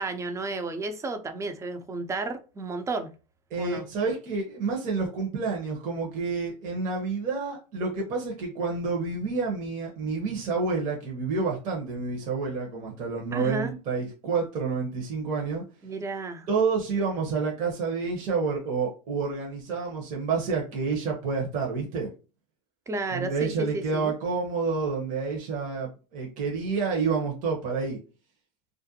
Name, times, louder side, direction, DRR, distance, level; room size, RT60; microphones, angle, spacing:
voice 1, 0.0-3.1 3.6-3.9 13.3-13.7 15.8-16.5 22.9-24.1, right 3 dB, 15° right, 0.4 m, -32 dB
voice 2, 3.5-15.6 16.5-22.1 23.1-28.0, right 4 dB, 45° right, 0.8 m, -29 dB
2.4 x 2.1 x 2.7 m
hypercardioid pair, 95°, 19 cm